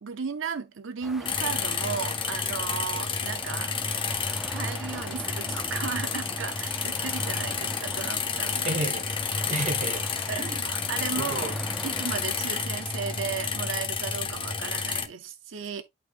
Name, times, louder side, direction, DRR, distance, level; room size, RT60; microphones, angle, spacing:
voice 1, 0.0-3.7 4.5-8.7 10.3-11.5 11.8-15.8, right 6 dB, 80° right, 0.6 m, -35 dB
sound 1, 1.0-13.7, equal, ahead, 0.4 m, -42 dB
sound 2, 1.2-15.1, left 5 dB, 25° left, 0.9 m, -30 dB
voice 2, 8.6-9.1 9.4-10.7 11.2-11.6, right 2 dB, 40° right, 1.2 m, -32 dB
11.5 x 4.2 x 2.4 m
head